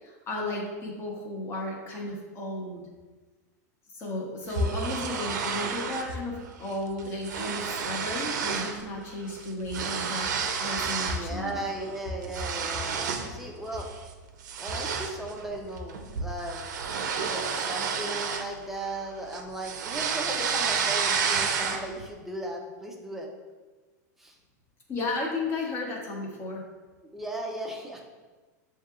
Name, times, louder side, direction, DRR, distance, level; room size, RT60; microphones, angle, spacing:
voice 1, 0.0-2.9 3.9-10.3 10.6-11.5 24.9-26.6, left 2 dB, 25° left, -2 dB, 1.1 m, -33 dB
sound 1, 4.5-6.1 6.5-6.7 7.0-8.8 9.1-11.3 11.7-13.3 13.8-14.0 14.4-19.0 19.3-22.0, right 6 dB, 85° right, 0.5 m, -30 dB
voice 2, 11.0-13.9 14.6-16.6 17.1-23.3 24.2-24.4 27.1-28.0, right 1 dB, 5° right, -1 dB, 0.6 m, -37 dB
6.9 x 2.8 x 2.4 m, 1.3 s
supercardioid pair, 135°, 9 cm